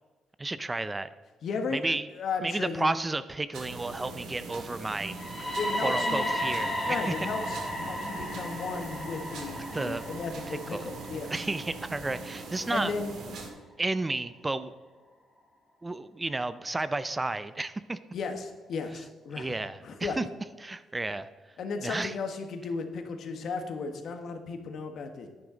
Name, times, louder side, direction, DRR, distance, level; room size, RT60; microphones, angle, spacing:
voice 1, 0.4-1.1 1.7-2.1 2.4-5.2 5.4-7.1 9.7-10.0 10.5-10.9 11.3-12.9 13.8-14.7 15.8-18.0 19.4-20.2 20.6-21.3 21.8-22.1, right 2 dB, 20° right, 14 dB, 0.5 m, -32 dB
voice 2, 1.4-1.8 2.1-2.9 5.5-6.3 6.9-11.3 12.7-13.1 18.1-19.5 19.8-20.2 21.6-25.3, left 4 dB, 65° left, 6 dB, 1.4 m, -35 dB
sound 1, 3.5-13.5, right 3 dB, 75° right, 1.9 m, -41 dB
sound 2, 5.0-12.9, equal, 10° left, 3.3 m, -34 dB
10.5 x 10.0 x 3.9 m, 1.3 s
cardioid pair, 90°, 0 cm